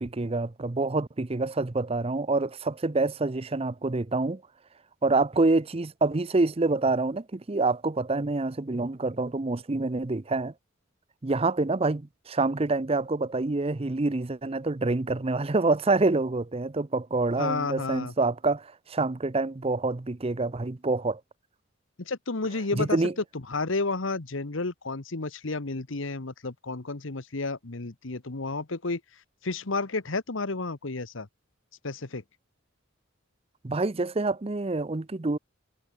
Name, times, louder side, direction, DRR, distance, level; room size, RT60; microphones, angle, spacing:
voice 1, 0.0-4.4 5.0-10.5 11.2-21.2 22.8-23.1 33.6-35.4, right 3 dB, 30° right, 0.6 m, -27 dB
voice 2, 17.4-18.1 22.0-23.0 23.5-29.0 29.4-31.3 31.8-32.2, left 3 dB, 70° left, 1.3 m, -31 dB
head